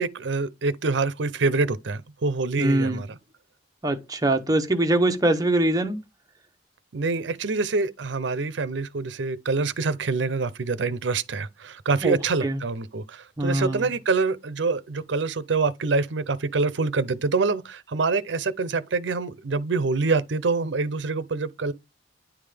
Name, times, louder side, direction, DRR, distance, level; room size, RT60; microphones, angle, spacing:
voice 1, 0.0-3.2 6.9-21.7, right 4 dB, 70° right, 0.6 m, -26 dB
voice 2, 2.6-3.0 3.8-6.0 12.0-12.6 13.4-13.9, right 1 dB, 20° right, 0.8 m, -23 dB
10.0 x 3.6 x 3.4 m
head